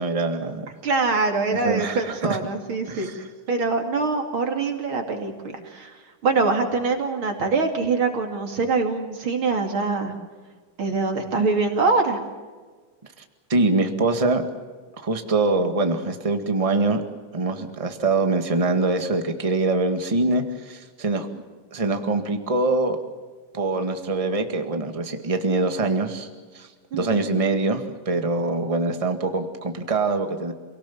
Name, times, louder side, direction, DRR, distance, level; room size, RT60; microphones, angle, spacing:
voice 1, 0.0-0.7 1.5-2.4 2.9-3.2 13.5-14.4 15.0-17.0 17.3-21.3 21.7-23.0 23.5-26.3 26.5-26.7 26.9-30.5, right 3 dB, 20° right, 6 dB, 1.0 m, -24 dB
voice 2, 0.8-3.1 3.5-10.1 10.8-12.2 26.9-27.3, right 4 dB, 40° right, 4 dB, 3.0 m, -24 dB
27.5 x 18.5 x 7.2 m, 1.4 s
omnidirectional pair, 3.7 m